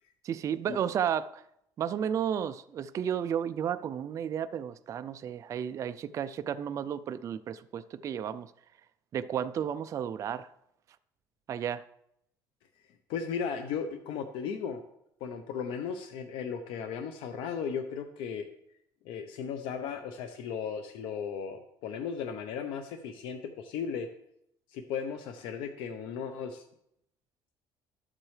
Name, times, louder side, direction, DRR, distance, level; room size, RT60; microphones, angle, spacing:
voice 1, 0.2-1.4 1.8-8.5 9.1-10.5 11.5-11.8, right 8 dB, 40° right, 12 dB, 0.3 m, -33 dB
voice 2, 13.1-14.8 15.2-18.4 19.0-24.1 24.7-26.6, left 6 dB, 90° left, 7 dB, 0.7 m, -36 dB
12.0 x 7.4 x 3.3 m, 0.77 s
cardioid pair, 135°, 9 cm